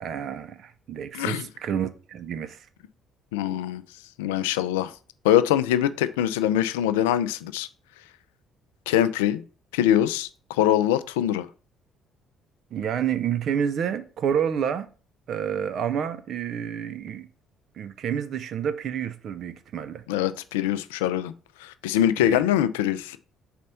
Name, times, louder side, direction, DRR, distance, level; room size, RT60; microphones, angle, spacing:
voice 1, 0.0-2.7 12.7-14.9 15.3-17.3 17.7-20.0 22.2-22.4, right 8 dB, 55° right, 0.5 m, -29 dB
voice 2, 1.1-1.5 3.3-3.8 4.2-4.9 5.2-7.7 8.9-9.4 9.7-11.5 20.1-21.3 21.6-23.2, left 11 dB, 75° left, 0.4 m, -23 dB
4.2 x 4.2 x 5.4 m
figure-of-eight pair, 45°, 0 cm